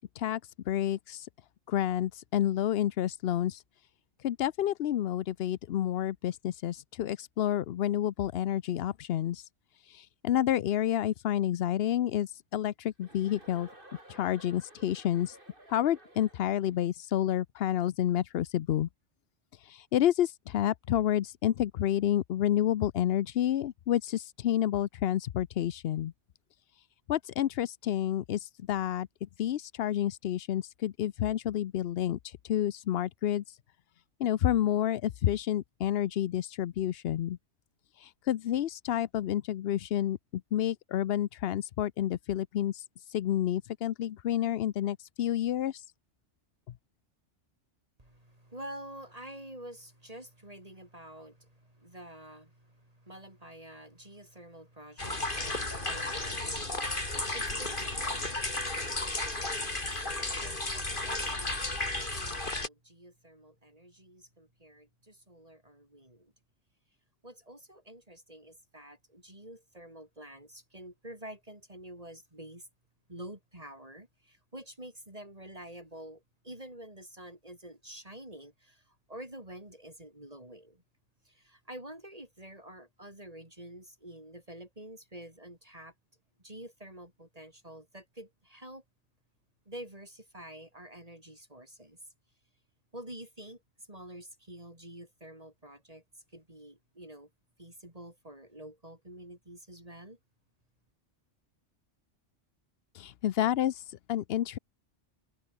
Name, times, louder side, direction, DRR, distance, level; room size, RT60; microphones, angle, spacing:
voice 1, 0.1-1.3 1.7-3.6 4.2-9.5 9.7-13.7 14.1-15.4 15.7-18.9 19.5-26.1 26.7-33.6 34.2-37.4 37.9-45.9 102.9-104.6, left 11 dB, 65° left, 0.8 m, -30 dB
Chuckle chortle, 13.0-16.8, right 1 dB, 45° right, 6.7 m, -54 dB
voice 2, 48.0-60.1 60.4-66.3 67.2-72.7 73.1-80.8 81.2-85.9 86.4-88.8 89.7-92.0 92.9-96.0 96.3-97.3 97.6-100.2, right 1 dB, 30° right, 4.8 m, -48 dB
sound 1, 55.0-62.7, left 2 dB, 45° left, 4.2 m, -33 dB
omnidirectional pair, 1.2 m